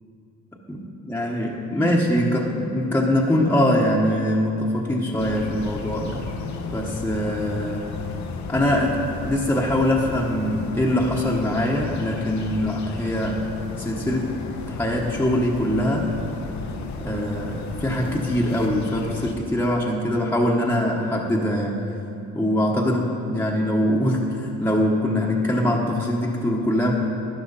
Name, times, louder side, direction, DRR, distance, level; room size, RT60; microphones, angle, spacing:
voice 1, 0.7-6.2 6.7-7.9 8.5-13.4 13.8-14.3 14.7-16.1 17.0-21.9 22.3-26.9, left 1 dB, 5° left, -3 dB, 1.2 m, -23 dB
sound 1, 5.2-19.3, left 4 dB, 70° left, 1.0 m, -33 dB
12.0 x 10.0 x 4.1 m, 2.9 s
cardioid pair, 90°, 30 cm